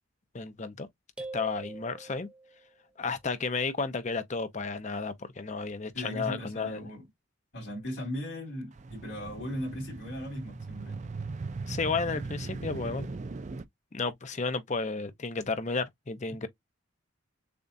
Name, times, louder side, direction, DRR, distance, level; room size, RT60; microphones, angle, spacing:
voice 1, 0.3-0.9 1.3-2.3 3.0-6.9 11.7-13.1 13.9-16.5, left 4 dB, 35° left, 0.6 m, -32 dB
sound 1, 1.2-2.7, right 2 dB, 5° right, 0.7 m, -43 dB
voice 2, 5.9-7.0 7.5-11.0, equal, 65° left, 3.1 m, -38 dB
sound 2, 8.8-13.6, right 3 dB, 35° right, 0.4 m, -39 dB
6.9 x 2.3 x 2.6 m
head